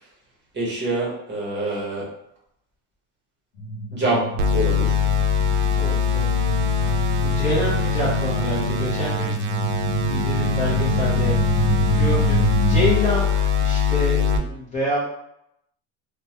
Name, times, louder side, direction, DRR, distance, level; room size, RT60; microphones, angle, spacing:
voice 1, 0.5-2.1 3.9-4.3 4.5-5.0, right 2 dB, 25° right, -5 dB, 0.9 m, -25 dB
sound 1, 3.6-12.9, right 1 dB, 90° left, 0.8 m, -25 dB
sound 2, 4.4-14.4, left 6 dB, 80° right, 0.6 m, -23 dB
voice 2, 5.8-15.1, left 1 dB, 15° left, -8 dB, 0.6 m, -28 dB
2.9 x 2.2 x 2.7 m, 0.78 s
cardioid pair, 145°, 44 cm